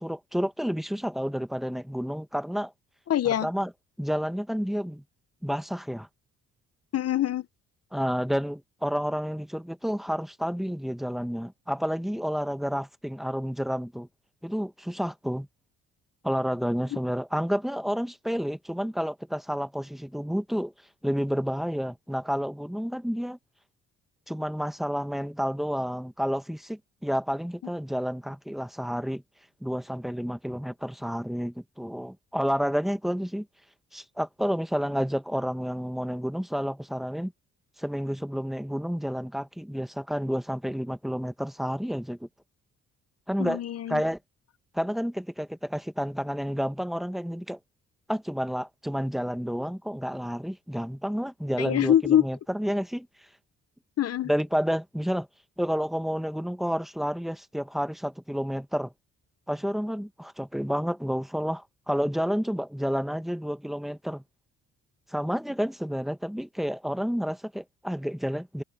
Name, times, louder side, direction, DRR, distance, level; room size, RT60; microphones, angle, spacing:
voice 1, 0.0-2.7 3.4-3.7 4.0-5.0 5.4-6.1 7.9-14.1 14.4-15.5 16.2-20.7 21.0-23.4 24.3-29.2 29.6-33.5 33.9-37.3 37.8-42.3 43.3-43.6 43.9-44.2 44.7-47.6 48.1-51.9 52.2-53.1 54.2-55.3 55.6-58.9 59.5-64.2 65.1-68.6, equal, ahead, 1.4 m, -30 dB
voice 2, 3.1-3.5 6.9-7.5 16.9-17.0 43.4-44.0 51.6-52.3 54.0-54.3, left 11 dB, 55° left, 0.9 m, -24 dB
cardioid pair, 90°, 30 cm